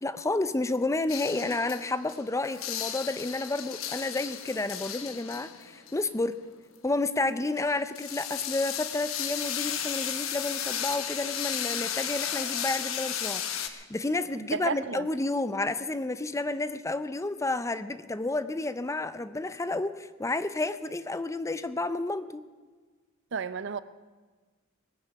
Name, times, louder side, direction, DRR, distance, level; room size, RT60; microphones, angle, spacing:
voice 1, 0.0-6.4 6.8-22.4, left 2 dB, 15° left, 13 dB, 0.5 m, -31 dB
sound 1, 1.1-2.2 2.4-6.4 7.6-13.7, left 9 dB, 75° left, 1.1 m, -34 dB
voice 2, 14.4-15.1 23.3-23.8, right 6 dB, 60° right, 15 dB, 0.6 m, -32 dB
20.0 x 9.0 x 6.9 m, 1.4 s
head